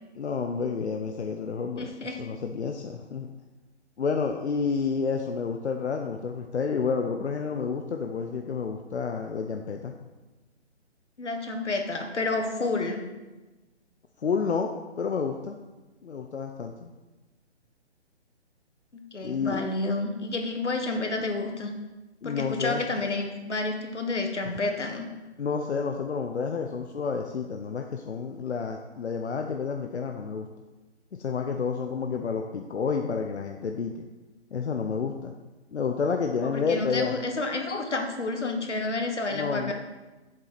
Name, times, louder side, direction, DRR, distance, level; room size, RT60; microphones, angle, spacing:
voice 1, 0.1-1.9 2.2-3.3 4.0-9.9 14.2-14.7 15.0-15.6 16.0-16.9 19.2-19.6 22.2-22.8 25.4-30.5 31.2-34.0 34.5-35.3 35.7-37.2 39.3-39.7, left 5 dB, 75° left, 4 dB, 0.8 m, -30 dB
voice 2, 1.8-2.2 11.2-13.0 18.9-21.7 22.2-25.1 36.4-39.7, left 3 dB, 90° left, 4 dB, 1.5 m, -30 dB
7.5 x 7.5 x 4.1 m, 1.2 s
figure-of-eight pair, 150°, 34 cm